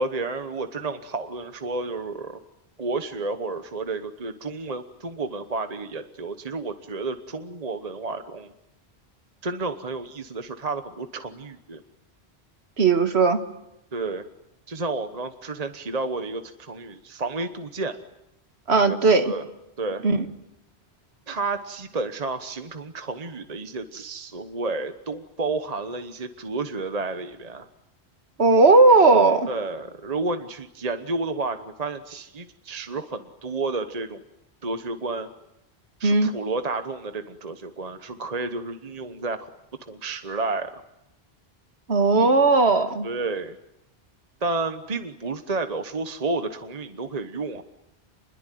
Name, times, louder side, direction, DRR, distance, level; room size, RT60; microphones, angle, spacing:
voice 1, 0.0-2.4 2.8-8.5 9.4-11.8 13.9-14.2 14.7-18.0 18.8-19.5 19.8-20.0 21.3-27.7 29.5-34.2 34.6-35.3 36.0-39.5 39.8-40.8 43.0-43.6 44.4-47.6, right 3 dB, 40° right, 9 dB, 1.2 m, -31 dB
voice 2, 12.8-13.4 18.7-19.3 20.0-20.3 28.4-29.5 36.0-36.3 41.9-43.1, right 3 dB, 85° right, 8 dB, 2.0 m, -17 dB
28.5 x 21.5 x 9.3 m, 0.87 s
omnidirectional pair, 1.1 m